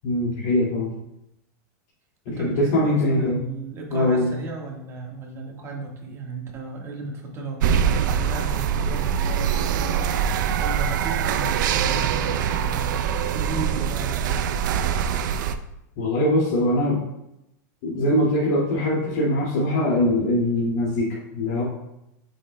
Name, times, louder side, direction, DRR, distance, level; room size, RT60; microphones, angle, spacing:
voice 1, 0.0-0.9 2.3-3.4 3.9-4.3 16.0-17.0 17.8-21.6, left 1 dB, 55° left, -7 dB, 2.2 m, -22 dB
voice 2, 2.3-14.5, right 3 dB, 25° right, 0 dB, 1.4 m, -35 dB
sound 1, 7.6-15.5, right 8 dB, 75° right, 0.5 m, -23 dB
7.8 x 6.2 x 2.2 m, 0.86 s
supercardioid pair, 150°, 10 cm